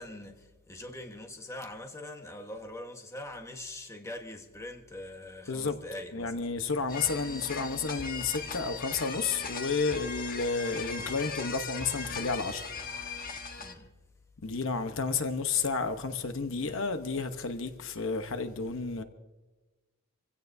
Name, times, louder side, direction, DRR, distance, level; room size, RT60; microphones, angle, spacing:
voice 1, 0.0-6.5 13.6-13.9, left 1 dB, 15° left, 1.3 m, -43 dB
voice 2, 6.1-13.2 14.4-19.0, left 4 dB, 65° left, 1.0 m, -31 dB
sound 1, 6.9-13.7, left 4 dB, 45° left, 1.3 m, -38 dB
26.0 x 16.5 x 2.7 m
head